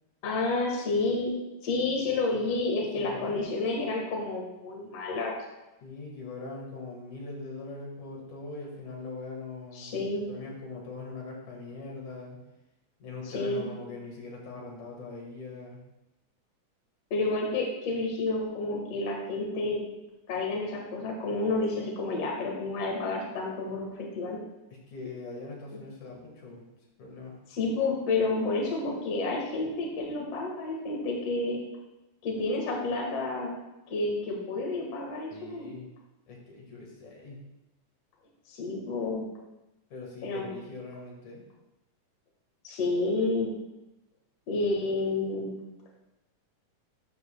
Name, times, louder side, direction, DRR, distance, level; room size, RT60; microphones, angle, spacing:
voice 1, 0.2-1.3 1.6-5.4 9.8-10.3 13.3-13.7 17.1-19.8 20.3-24.4 27.5-31.6 32.2-33.5 33.9-35.7 38.5-39.3 40.2-40.5 42.6-43.5 44.5-45.6, left 3 dB, 55° left, -2 dB, 2.4 m, -30 dB
voice 2, 3.0-3.4 5.8-12.4 13.0-15.8 24.7-26.6 27.0-27.4 35.3-35.9 36.3-37.5 39.9-41.4, left 3 dB, 70° left, -1 dB, 3.2 m, -42 dB
12.5 x 8.1 x 2.3 m, 0.96 s
omnidirectional pair, 3.7 m